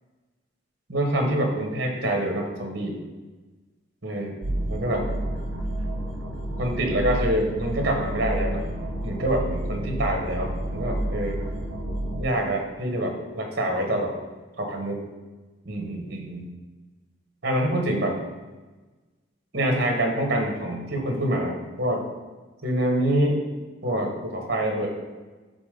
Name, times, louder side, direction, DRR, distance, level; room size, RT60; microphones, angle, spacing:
voice 1, 0.9-3.0 4.0-4.3 4.7-5.0 6.6-8.6 9.0-11.4 12.2-14.1 14.6-15.0 15.6-16.5 17.4-18.2 19.5-22.0 22.6-23.4 23.8-24.9, right 1 dB, 55° right, 2 dB, 1.3 m, -26 dB
sound 1, 4.4-12.2, right 1 dB, 70° right, 1.1 m, -30 dB
7.1 x 4.1 x 5.2 m, 1.2 s
head